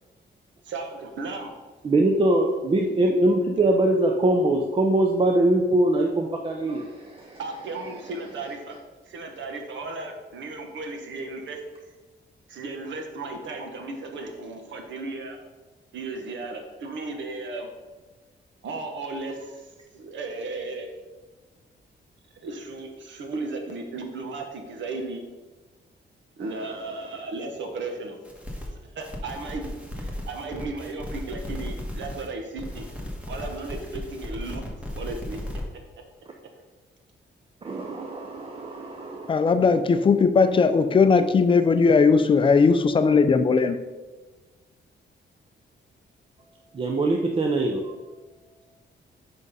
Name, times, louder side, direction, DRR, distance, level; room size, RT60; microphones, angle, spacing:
voice 1, 0.6-1.5 7.4-8.7 9.1-11.6 12.5-15.4 15.9-17.7 18.6-19.7 19.9-20.9 22.4-25.2 26.4-28.2 28.7-29.6 30.0-32.9 33.3-34.6 34.9-35.4, right 3 dB, 75° right, 4 dB, 1.2 m, -35 dB
voice 2, 1.8-7.4 37.6-39.4 46.7-47.9, right 1 dB, 30° right, 1 dB, 0.5 m, -23 dB
sound 1, 28.2-28.7 29.0-32.3 32.6-35.6, left 1 dB, 5° right, 1.2 m, -36 dB
voice 3, 39.3-43.8, left 5 dB, 25° left, 9 dB, 0.4 m, -18 dB
6.0 x 5.3 x 5.5 m, 1.2 s
wide cardioid pair, 170°, 19 cm